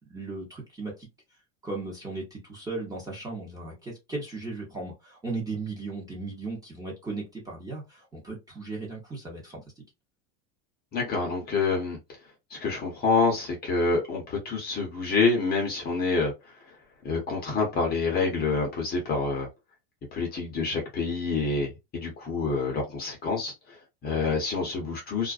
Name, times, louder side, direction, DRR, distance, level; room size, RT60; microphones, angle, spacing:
voice 1, 0.1-1.1 1.6-9.6, right 3 dB, 10° right, 0.7 m, -36 dB
voice 2, 10.9-12.0 12.5-16.3 17.0-19.5 20.1-25.3, left 4 dB, 25° left, 0.7 m, -27 dB
2.4 x 2.1 x 2.4 m
supercardioid pair, 155°, 37 cm